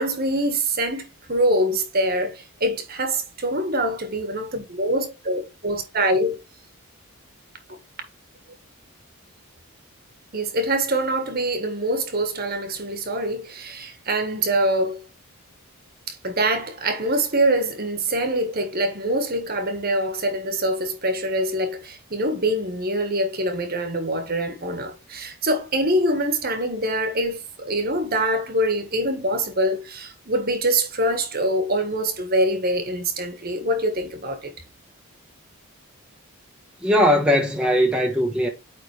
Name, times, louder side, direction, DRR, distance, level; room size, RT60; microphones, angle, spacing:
voice 1, 0.0-6.4 10.3-15.0 16.1-34.5, right 1 dB, 40° right, 1.5 m, -24 dB
voice 2, 36.8-38.5, equal, 5° right, 1.2 m, -19 dB
9.0 x 3.8 x 3.3 m
head